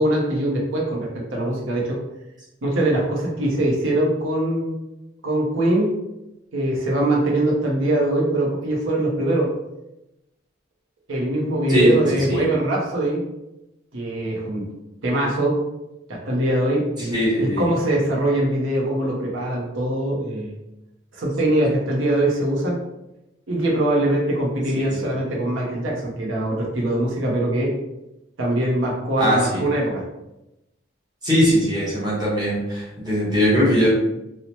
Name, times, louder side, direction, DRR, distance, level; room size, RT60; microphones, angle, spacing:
voice 1, 0.0-2.0 2.6-4.7 5.2-5.9 6.5-9.5 11.1-13.2 13.9-14.7 15.0-15.6 16.1-20.5 21.1-22.8 23.5-27.7 28.4-30.0, right 1 dB, 75° right, -2 dB, 0.7 m, -22 dB
voice 2, 17.0-17.6 24.7-24.9 29.2-29.6 31.2-33.9, equal, 20° right, -7 dB, 0.9 m, -20 dB
2.8 x 2.0 x 2.8 m, 0.93 s
head